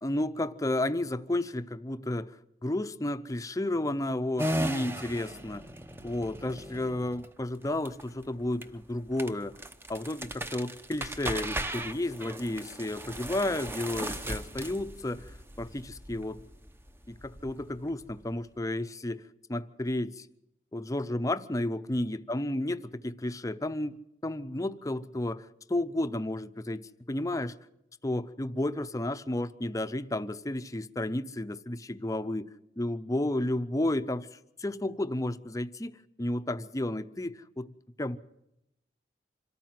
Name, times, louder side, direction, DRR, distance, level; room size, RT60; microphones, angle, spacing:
voice 1, 0.0-2.4 2.6-5.6 6.0-9.6 9.9-16.4 17.1-19.2 19.5-20.3 20.7-27.5 28.0-32.5 32.8-37.7 38.0-38.2, left 1 dB, 20° left, 0.7 m, -32 dB
sound 1, 4.4-18.6, right 1 dB, 15° right, 0.8 m, -38 dB
26.0 x 14.0 x 7.6 m
head